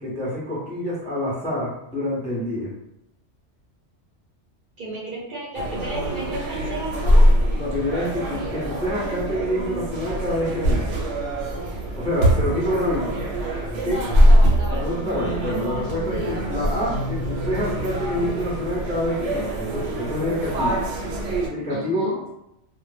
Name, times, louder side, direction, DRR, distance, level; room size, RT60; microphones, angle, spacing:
voice 1, 0.0-2.7 7.6-11.0 12.0-13.2 13.8-14.0 14.7-20.8 21.5-22.2, left 1 dB, 10° left, -6 dB, 0.4 m, -27 dB
voice 2, 4.8-7.3 13.8-14.9 16.1-16.4 21.7-22.2, right 1 dB, 55° right, -5 dB, 0.7 m, -33 dB
sound 1, 5.6-21.5, equal, 85° right, 0.9 m, -23 dB
sound 2, 15.0-19.0, equal, 85° left, 0.9 m, -34 dB
2.1 x 2.0 x 3.1 m, 0.80 s
omnidirectional pair, 1.2 m